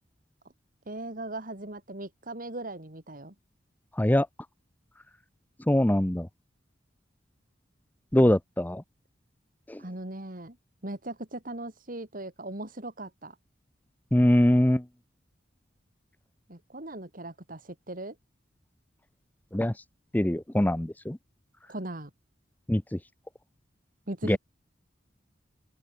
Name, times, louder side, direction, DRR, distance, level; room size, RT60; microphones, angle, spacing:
voice 1, 0.9-3.3 8.2-8.3 9.8-10.6 10.8-13.4 16.5-18.2 21.7-22.1 24.1-24.4, right 1 dB, 50° right, 3.3 m, -39 dB
voice 2, 4.0-4.3 5.7-6.3 8.1-8.8 9.7-9.8 14.1-14.9 19.5-19.7 20.1-21.2 22.7-23.0 24.2-24.4, left 1 dB, 10° left, 0.6 m, -23 dB
open air
head